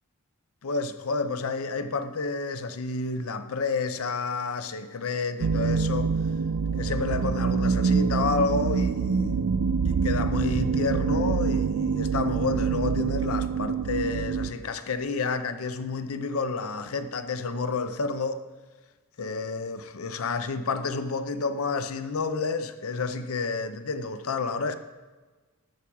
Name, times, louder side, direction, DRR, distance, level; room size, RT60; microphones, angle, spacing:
voice 1, 0.6-6.1 6.8-18.4 19.2-24.7, left 4 dB, 80° left, 0.7 m, -30 dB
sound 1, 5.4-14.5, right 5 dB, 75° right, 0.4 m, -25 dB
13.0 x 4.9 x 8.5 m
head